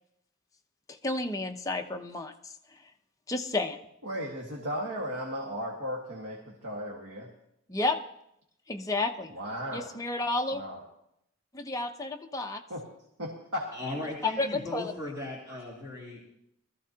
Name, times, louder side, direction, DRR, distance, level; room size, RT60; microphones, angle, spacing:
voice 1, 1.0-2.5 3.3-3.8 7.7-8.0 8.7-9.3 9.7-10.6 11.5-12.6 14.2-14.9, left 2 dB, 15° left, 3 dB, 0.7 m, -31 dB
voice 2, 4.0-7.3 9.3-9.9 10.5-10.8 12.7-12.8 13.2-13.6 15.5-15.6, equal, 85° right, -2 dB, 1.8 m, -35 dB
voice 3, 13.7-16.2, left 1 dB, 15° right, -7 dB, 3.1 m, -37 dB
20.5 x 14.0 x 2.9 m, 0.75 s
head